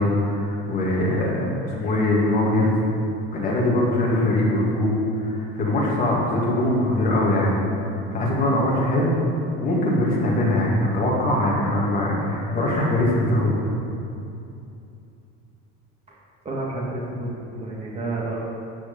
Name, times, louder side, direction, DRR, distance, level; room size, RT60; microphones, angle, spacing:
voice 1, 0.0-2.8 3.3-7.6 8.1-9.2 9.6-13.6, left 1 dB, 30° left, -4 dB, 2.6 m, -22 dB
voice 2, 16.4-18.4, right 2 dB, 20° right, -5 dB, 1.7 m, -30 dB
13.5 x 5.1 x 8.7 m, 2.7 s
cardioid pair, 170°, 30 cm